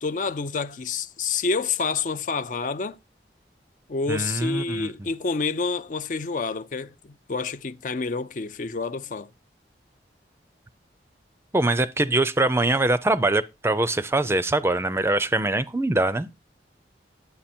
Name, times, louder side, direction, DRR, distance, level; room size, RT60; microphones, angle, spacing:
voice 1, 0.0-3.0 3.9-9.3, left 4 dB, 45° left, 0.4 m, -28 dB
voice 2, 4.1-4.9 11.5-16.3, right 2 dB, 15° right, 0.5 m, -23 dB
10.0 x 7.6 x 4.3 m
head